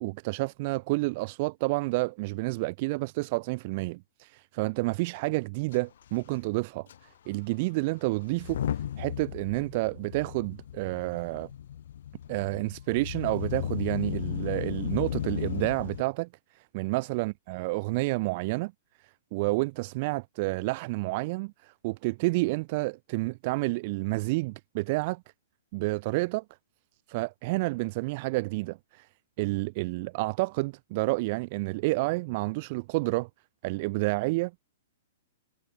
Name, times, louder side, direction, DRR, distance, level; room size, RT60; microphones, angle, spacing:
voice 1, 0.0-6.9 7.3-8.6 9.0-11.5 12.3-16.3 16.5-18.7 19.3-25.2 25.7-26.4 27.1-29.1 29.4-33.3 33.6-34.6, right 24 dB, 45° right, 1.0 m, -29 dB
Motor vehicle (road) / Engine starting / Accelerating revving vroom, 5.7-5.8 6.0-6.3 6.9-7.0 8.3-16.0, left 10 dB, 60° left, 2.7 m, -35 dB
hypercardioid pair, 120°, 0 cm